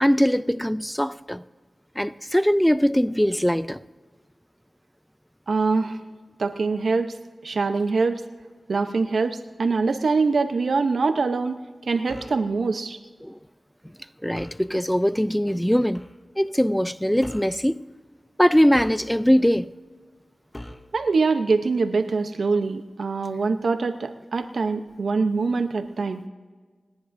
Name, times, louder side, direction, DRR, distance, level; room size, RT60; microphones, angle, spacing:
voice 1, 0.0-1.4 2.0-3.8 13.2-13.3 14.2-16.0 16.4-17.8 18.4-19.7, equal, 5° left, 0.4 m, -21 dB
voice 2, 5.5-6.0 6.4-7.1 7.4-8.2 8.7-11.5 11.9-13.0 20.9-26.2, right 4 dB, 80° right, 0.7 m, -24 dB
sound 1, 12.1-12.5 14.4-14.7 15.9-16.2 17.2-17.6 18.7-19.4 20.5-21.0, left 1 dB, 25° left, 0.8 m, -41 dB
28.0 x 10.5 x 2.6 m
cardioid pair, 50°, 0 cm